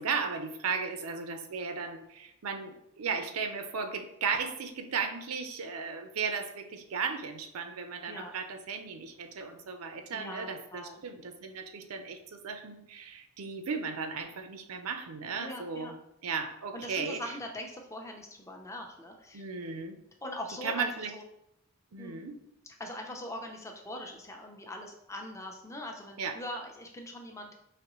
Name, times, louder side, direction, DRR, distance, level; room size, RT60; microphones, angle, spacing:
voice 1, 0.0-15.9 16.2-17.2 19.3-20.0 20.6-21.1 21.9-22.4 26.2-26.4, right 5 dB, 85° right, 7 dB, 0.5 m, -35 dB
voice 2, 10.1-11.0 15.4-15.9 16.7-19.5 20.2-21.2 22.0-22.2 22.8-27.5, left 1 dB, 15° left, 2 dB, 0.5 m, -42 dB
5.0 x 3.1 x 3.0 m, 0.80 s
head